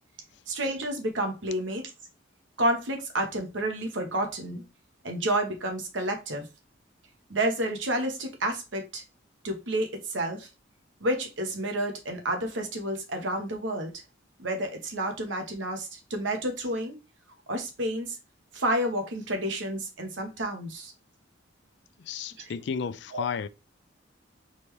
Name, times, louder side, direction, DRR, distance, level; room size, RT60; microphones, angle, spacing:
voice 1, 0.5-1.9 2.6-4.6 5.0-6.5 7.3-9.0 9.4-10.5 11.0-13.9 14.4-17.0 17.5-18.2 18.5-20.9 23.1-23.3, right 1 dB, 75° right, 1.2 m, -30 dB
voice 2, 22.0-23.5, left 6 dB, 60° left, 0.4 m, -33 dB
4.2 x 3.2 x 3.2 m
head